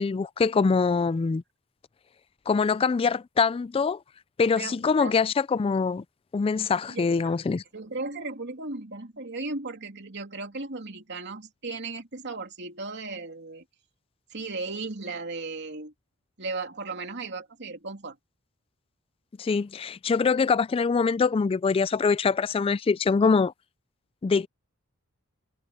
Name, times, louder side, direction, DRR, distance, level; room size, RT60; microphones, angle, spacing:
voice 1, 0.0-1.4 2.5-4.0 4.4-6.0 6.3-7.6 19.4-23.5 24.2-24.5, left 5 dB, 25° left, 0.3 m, -24 dB
voice 2, 4.6-5.2 6.9-7.4 7.7-13.6 14.3-15.9 16.4-18.2, right 3 dB, 55° right, 3.1 m, -36 dB
head